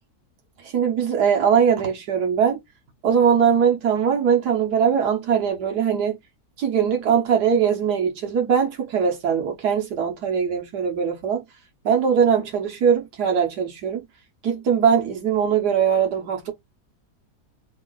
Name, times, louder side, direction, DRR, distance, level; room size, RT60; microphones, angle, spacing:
voice 1, 0.6-2.6 3.0-6.2 6.6-11.4 11.8-14.0 14.4-16.5, right 7 dB, 85° right, 1.6 m, -21 dB
3.6 x 2.4 x 3.8 m
omnidirectional pair, 1.7 m